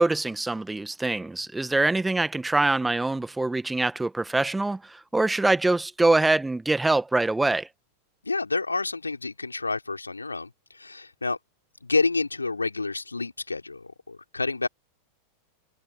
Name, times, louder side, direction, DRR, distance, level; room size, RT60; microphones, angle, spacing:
voice 1, 0.0-7.7, right 2 dB, 5° right, 1.3 m, -24 dB
voice 2, 8.2-11.4 11.8-14.7, left 3 dB, 80° left, 3.5 m, -29 dB
figure-of-eight pair, 90°, 0 cm